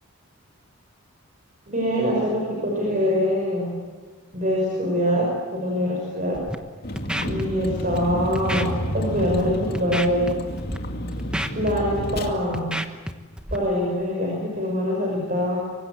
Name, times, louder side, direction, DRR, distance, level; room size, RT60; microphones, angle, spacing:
voice 1, 1.7-3.8 4.3-6.5 7.2-10.3 11.5-12.8 13.5-15.6, equal, 40° right, -1 dB, 5.9 m, -24 dB
Scratching (performance technique), 6.3-6.5 7.0-7.4 7.8-8.0 8.3-8.7 9.2-9.4 9.7-10.3 10.6-10.8 11.1-12.2 12.5-13.1 13.4-13.6, equal, 5° right, 1.1 m, -30 dB
Vehicle, 6.8-12.3, equal, 45° left, 2.4 m, -30 dB
25.0 x 24.5 x 8.1 m, 1.4 s
head